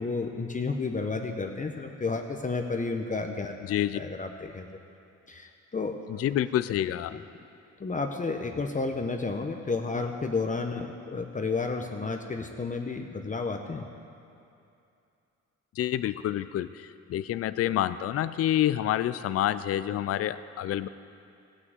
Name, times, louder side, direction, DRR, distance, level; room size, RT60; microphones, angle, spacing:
voice 1, 0.0-4.7 5.3-5.9 7.1-7.2 7.8-13.9, left 4 dB, 25° left, 3 dB, 0.9 m, -31 dB
voice 2, 3.6-4.0 6.1-7.2 15.8-20.9, left 12 dB, 50° left, 14 dB, 0.4 m, -28 dB
15.5 x 6.2 x 8.0 m, 2.6 s
cardioid pair, 90°, 30 cm